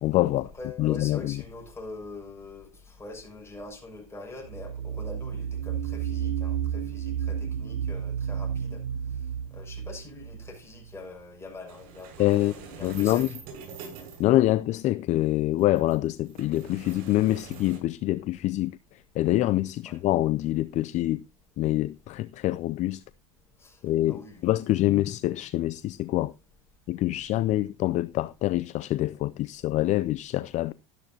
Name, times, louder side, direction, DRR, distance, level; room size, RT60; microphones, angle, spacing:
voice 1, 0.0-0.5 0.8-1.4 12.2-12.5 12.8-13.3 14.2-21.2 21.6-23.0 23.8-26.3 26.9-30.7, left 15 dB, 45° left, 0.5 m, -25 dB
voice 2, 0.6-8.8 9.5-13.3 19.8-20.0 23.6-23.8 24.1-24.5, left 2 dB, 15° left, 6.5 m, -43 dB
sound 1, 4.4-11.1, right 8 dB, 85° right, 1.2 m, -32 dB
sound 2, 11.7-14.3 15.5-17.8, right 6 dB, 60° right, 7.4 m, -44 dB
13.0 x 11.5 x 2.9 m
hypercardioid pair, 90°, 17 cm